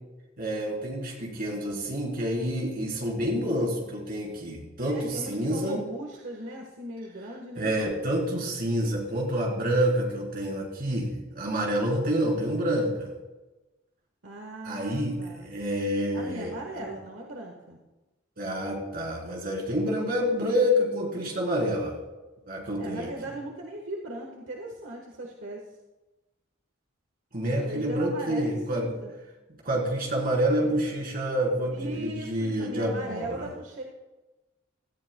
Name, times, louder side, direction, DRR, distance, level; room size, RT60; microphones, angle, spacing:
voice 1, 0.4-5.8 7.6-13.1 14.6-16.9 18.4-22.0 22.5-23.1 27.3-28.9 29.6-33.5, equal, 50° right, -2 dB, 3.8 m, -28 dB
voice 2, 4.9-7.7 14.2-15.5 16.1-17.8 22.7-25.6 27.5-29.1 31.7-33.8, right 1 dB, 70° right, 0 dB, 1.5 m, -38 dB
18.0 x 14.0 x 2.3 m, 1.1 s
head